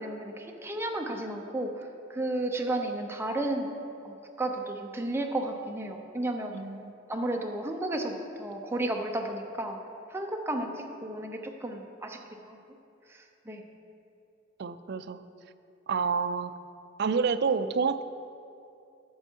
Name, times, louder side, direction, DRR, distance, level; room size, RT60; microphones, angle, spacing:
voice 1, 0.0-3.7 4.0-6.5 7.1-9.8 10.1-12.6 13.1-13.6, right 1 dB, 15° right, 2 dB, 0.7 m, -33 dB
voice 2, 6.5-6.9 14.6-15.2 15.9-16.5 17.0-18.0, right 5 dB, 55° right, 11 dB, 0.4 m, -28 dB
11.0 x 6.8 x 4.6 m, 2.7 s
head